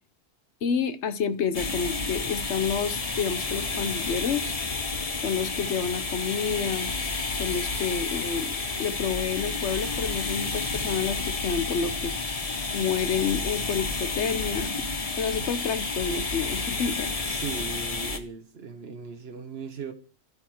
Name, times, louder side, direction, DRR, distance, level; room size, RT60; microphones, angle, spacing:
voice 1, 0.6-4.5 5.2-6.9 7.4-12.1 12.7-14.7 15.2-17.1, left 6 dB, 85° left, 1.2 m, -29 dB
sound 1, 1.5-18.2, left 3 dB, 35° left, 1.0 m, -30 dB
voice 2, 17.2-19.9, right 5 dB, 65° right, 1.2 m, -38 dB
12.0 x 8.7 x 4.5 m
omnidirectional pair, 1.1 m